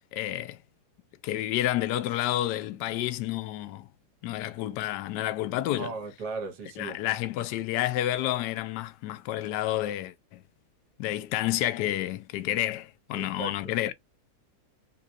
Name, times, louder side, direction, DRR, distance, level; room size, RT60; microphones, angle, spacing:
voice 1, 0.1-0.6 1.2-3.9 4.2-5.9 6.8-10.4 11.0-13.9, left 14 dB, 75° left, 1.1 m, -30 dB
voice 2, 5.8-7.0 13.1-13.7, right 4 dB, 65° right, 1.5 m, -37 dB
4.0 x 2.4 x 2.6 m
omnidirectional pair, 2.0 m